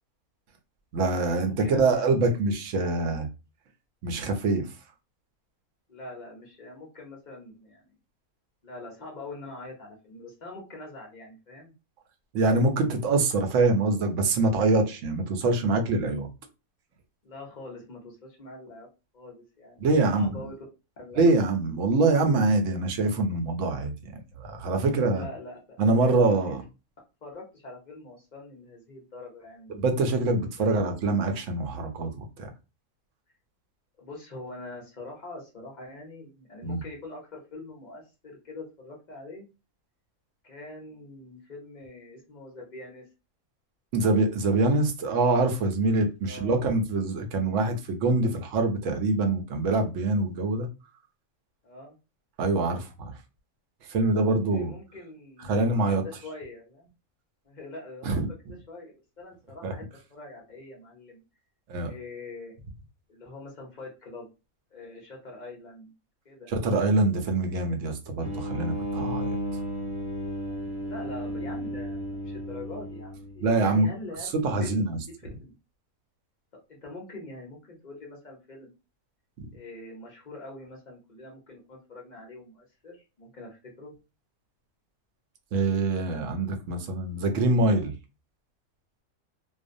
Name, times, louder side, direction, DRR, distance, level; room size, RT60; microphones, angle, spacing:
voice 1, 0.9-3.3 4.0-4.7 12.3-16.3 19.8-20.3 21.2-23.9 24.4-25.3 25.8-26.6 29.7-32.5 36.6-36.8 43.9-50.7 52.4-53.1 53.9-54.7 55.4-56.0 58.0-58.2 59.6-59.7 61.7-61.9 66.5-69.4 73.4-73.9 74.2-75.0 85.5-87.9, right 2 dB, 70° right, 0.8 m, -24 dB
voice 2, 1.4-2.1 5.9-7.9 8.6-11.7 17.2-18.9 19.1-20.6 21.0-21.4 25.0-25.6 26.0-26.6 27.2-29.8 30.5-30.8 34.0-39.5 40.4-43.1 46.3-46.6 51.6-52.0 54.5-56.9 57.4-58.4 58.7-61.2 61.8-62.5 63.1-64.3 64.7-65.9 66.2-66.5 70.8-74.3 74.6-74.9 75.4-75.5 76.7-78.8 79.5-83.9, left 2 dB, 45° left, 0.6 m, -44 dB
sound 1, 68.2-73.6, right 1 dB, 5° right, 0.8 m, -34 dB
2.4 x 2.1 x 2.5 m
omnidirectional pair, 1.5 m